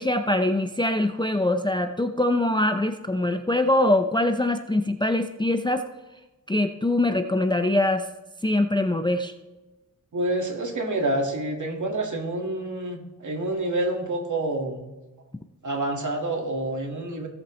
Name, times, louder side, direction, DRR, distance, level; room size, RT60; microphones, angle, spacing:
voice 1, 0.0-5.8 6.5-8.1 8.4-9.3, left 1 dB, 15° left, 7 dB, 0.5 m, -23 dB
voice 2, 10.1-14.8 15.6-17.3, right 1 dB, 55° right, 2 dB, 1.9 m, -28 dB
17.0 x 7.4 x 3.1 m, 1.1 s
wide cardioid pair, 85°, 37 cm